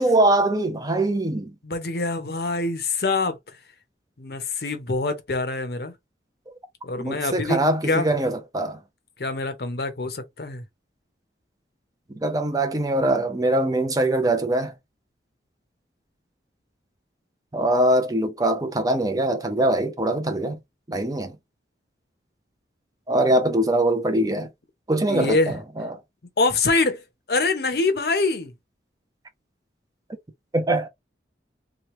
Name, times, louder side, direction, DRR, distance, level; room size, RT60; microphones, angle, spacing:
voice 1, 0.0-1.5 7.0-8.8 12.2-14.7 17.5-20.6 20.9-21.3 23.1-24.5 24.9-26.0 30.5-30.9, right 1 dB, 20° right, 0.5 m, -22 dB
voice 2, 1.6-3.4 4.2-5.9 6.8-7.6 7.9-8.1 9.2-10.6 25.1-25.6 26.4-27.0 27.3-28.5, left 3 dB, 55° left, 0.7 m, -24 dB
3.0 x 2.2 x 3.0 m
head